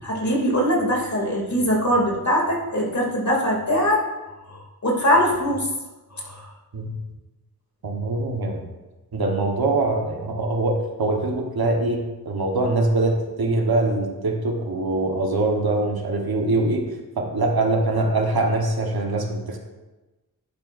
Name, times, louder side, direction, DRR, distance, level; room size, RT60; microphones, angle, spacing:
voice 1, 0.0-4.0 4.5-5.7 6.1-6.5, equal, 50° left, -2 dB, 2.8 m, -22 dB
voice 2, 7.8-8.6 9.1-16.9 17.2-19.6, right 2 dB, 75° right, 2 dB, 1.4 m, -23 dB
11.0 x 8.9 x 2.7 m, 1.1 s
cardioid pair, 55°, 37 cm